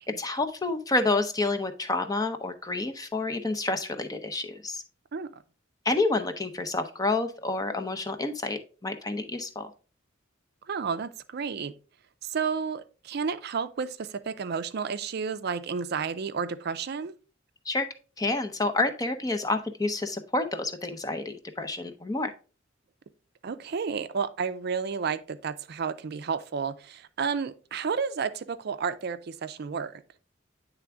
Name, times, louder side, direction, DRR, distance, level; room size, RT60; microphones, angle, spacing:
voice 1, 0.2-4.8 5.8-9.7 17.7-17.9 18.2-22.3, left 2 dB, 20° left, 0.6 m, -29 dB
voice 2, 10.7-11.7 12.2-17.1 23.4-30.0, right 6 dB, 55° right, 0.4 m, -31 dB
9.5 x 3.4 x 3.5 m
head